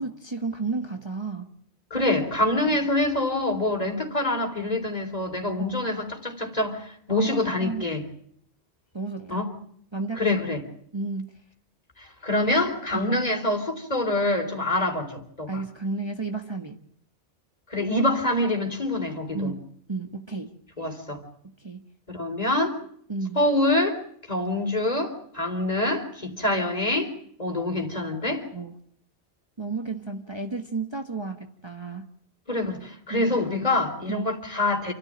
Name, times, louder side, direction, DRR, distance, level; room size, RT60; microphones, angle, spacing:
voice 1, 0.0-1.5 3.7-3.9 7.1-7.8 8.9-9.4 9.9-10.5 10.9-11.3 12.9-13.1 15.5-16.8 19.3-19.6 19.9-20.6 21.4-21.8 23.1-23.4 28.5-28.7 29.6-32.1 33.1-33.3 34.1-34.3, right 3 dB, 25° right, 4 dB, 1.5 m, -32 dB
voice 2, 1.9-8.0 9.3-9.5 10.2-10.6 12.0-15.6 17.7-19.5 20.8-21.2 22.1-22.8 23.4-24.0 24.3-27.1 27.4-28.5 32.5-34.9, left 2 dB, 35° left, 4 dB, 4.0 m, -25 dB
28.5 x 14.5 x 8.8 m, 0.67 s
omnidirectional pair, 1.1 m